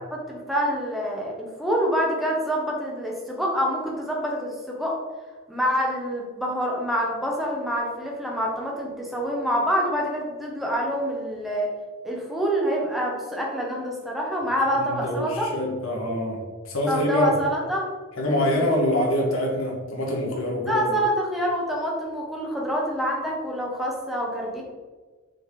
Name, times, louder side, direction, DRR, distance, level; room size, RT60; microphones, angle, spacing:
voice 1, 0.1-5.0 5.5-11.7 12.0-15.5 16.9-17.9 18.4-18.6 20.7-24.6, equal, ahead, -3 dB, 1.3 m, -26 dB
voice 2, 14.7-17.4 18.2-21.0, left 1 dB, 70° left, -1 dB, 1.7 m, -25 dB
6.2 x 4.5 x 4.9 m, 1.3 s
head